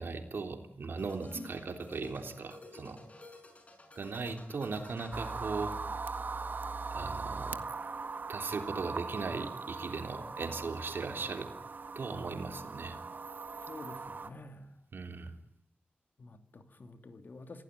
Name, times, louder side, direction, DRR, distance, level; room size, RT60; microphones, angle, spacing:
voice 1, 0.0-3.0 4.0-5.7 6.9-7.6 8.3-11.5 12.0-13.0 14.9-15.3, right 4 dB, 80° right, 6 dB, 3.5 m, -38 dB
sound 1, 1.0-6.2, left 2 dB, 40° left, 5.4 m, -52 dB
sound 2, 5.1-14.3, right 4 dB, 60° right, 1.7 m, -40 dB
voice 2, 13.6-14.8 16.2-17.6, left 2 dB, 60° left, 8 dB, 2.7 m, -49 dB
26.0 x 17.0 x 9.4 m, 0.70 s
wide cardioid pair, 95°, 4 cm